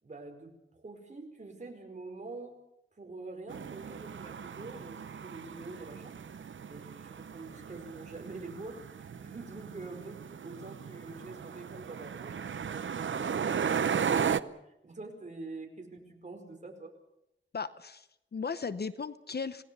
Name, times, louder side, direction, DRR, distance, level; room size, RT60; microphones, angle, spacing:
voice 1, 0.0-2.5 3.0-6.1 6.7-10.2 10.4-13.5 14.0-16.9, right 3 dB, 35° right, 3 dB, 5.0 m, -46 dB
sound 1, 3.5-14.4, right 7 dB, 70° right, 0.8 m, -36 dB
voice 2, 17.5-19.6, left 5 dB, 50° left, 13 dB, 0.9 m, -37 dB
27.5 x 18.5 x 7.0 m, 0.83 s
wide cardioid pair, 125°, 21 cm